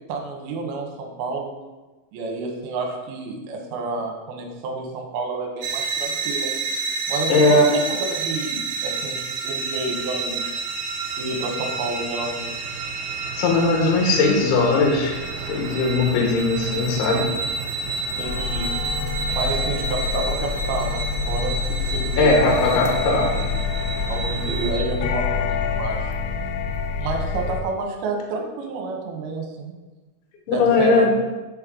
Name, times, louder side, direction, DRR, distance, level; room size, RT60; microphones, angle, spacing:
voice 1, 0.1-1.5 2.1-6.5 7.1-7.6 7.9-10.6 11.2-12.7 18.0-18.7 19.3-22.7 24.1-26.1 27.0-29.7 30.5-31.1, right 3 dB, 70° right, 1 dB, 2.5 m, -30 dB
sound 1, 5.6-24.8, right 4 dB, 85° right, 2.2 m, -29 dB
voice 2, 7.3-7.7 13.4-17.3 22.2-23.3 30.5-31.1, left 3 dB, 70° left, 0 dB, 2.7 m, -19 dB
sound 2, 18.2-27.6, left 6 dB, 90° left, 3.0 m, -27 dB
8.7 x 5.4 x 3.7 m, 1.2 s
omnidirectional pair, 5.4 m